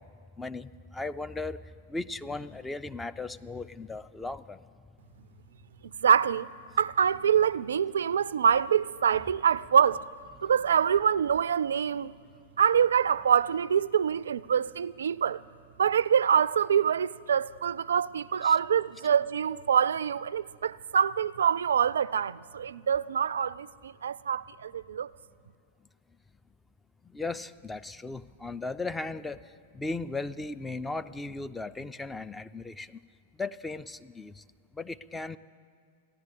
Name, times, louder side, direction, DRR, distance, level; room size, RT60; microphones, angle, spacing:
voice 1, 0.4-1.6 1.9-4.6 18.4-18.6 27.1-29.4 29.7-33.0 33.4-34.4 34.8-35.4, left 3 dB, 10° left, 0.4 m, -36 dB
voice 2, 6.0-6.5 6.8-10.1 10.4-12.1 12.6-15.4 15.8-25.1, right 8 dB, 75° right, 0.3 m, -25 dB
14.5 x 11.0 x 8.3 m
hypercardioid pair, 100°, 0 cm